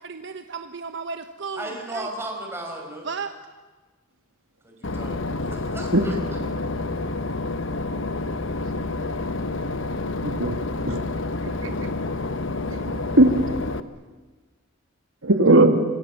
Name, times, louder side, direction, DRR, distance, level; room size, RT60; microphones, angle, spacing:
voice 1, 0.1-2.1 3.0-3.3, right 5 dB, 60° right, 8 dB, 1.1 m, -34 dB
voice 2, 1.6-3.1 4.6-6.1, right 1 dB, 10° right, 1 dB, 5.4 m, -35 dB
Boat Water vehicle / Engine, 4.8-13.8, left 2 dB, 65° left, 1.2 m, -29 dB
voice 3, 10.2-10.6 10.9-11.0 11.4-11.7 12.7-13.3 15.2-15.7, right 2 dB, 80° right, 6 dB, 2.3 m, -18 dB
27.0 x 25.0 x 7.2 m, 1.3 s
head